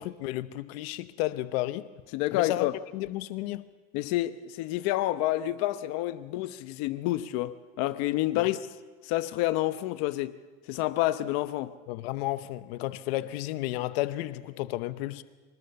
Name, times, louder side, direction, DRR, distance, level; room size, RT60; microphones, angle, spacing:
voice 1, 0.0-1.9 2.3-2.7 2.9-3.7 8.4-8.5 11.9-15.2, left 16 dB, 90° left, 1.0 m, -32 dB
voice 2, 2.1-2.7 3.9-8.6 9.0-10.4 10.7-11.7, left 15 dB, 60° left, 0.9 m, -28 dB
24.5 x 19.5 x 7.0 m
cardioid pair, 160°, 30 cm